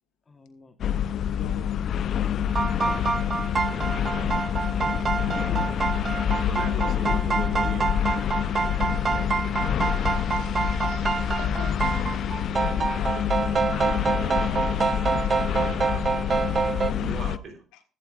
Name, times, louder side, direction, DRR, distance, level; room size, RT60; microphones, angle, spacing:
voice 1, 0.3-0.8 4.8-6.1, left 3 dB, 25° left, 9 dB, 1.2 m, -49 dB
sound 1, 0.8-17.4, left 9 dB, 55° left, 0.5 m, -27 dB
voice 2, 1.4-1.8 6.7-7.3 10.3-12.3 12.6-16.2 16.9-17.2 17.7-17.8, left 9 dB, 85° left, 7 dB, 1.4 m, -43 dB
sound 2, 2.5-16.9, right 5 dB, 35° right, 0.6 m, -27 dB
voice 3, 6.4-8.0 15.9-16.0 16.8-17.6, right 3 dB, 50° right, 4 dB, 3.6 m, -38 dB
15.0 x 8.9 x 2.4 m, 0.39 s
cardioid pair, 90°, 0 cm